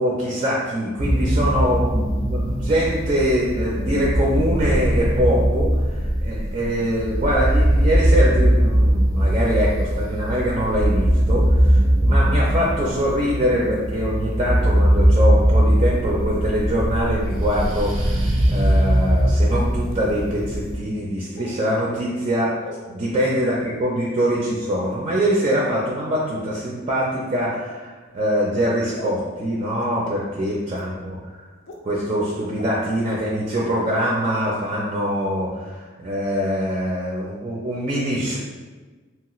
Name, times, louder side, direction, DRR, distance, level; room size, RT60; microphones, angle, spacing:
voice 1, 0.0-5.7 6.0-22.5 22.9-31.5 31.8-38.4, equal, 30° right, -4 dB, 0.4 m, -23 dB
sound 1, 1.0-20.8, equal, 90° right, 0.6 m, -20 dB
sound 2, 18.9-19.0 19.9-20.0 21.4-21.6 22.6-22.8 23.6-23.8 24.7-25.0 25.6-25.8 26.5-26.6 27.3-27.5 28.2-28.3 29.0-29.1 29.8-29.9 30.7-30.8 31.7-31.8 32.6-32.7 33.2-33.3, left 1 dB, 65° left, 0.5 m, -39 dB
2.9 x 2.3 x 2.9 m, 1.3 s
head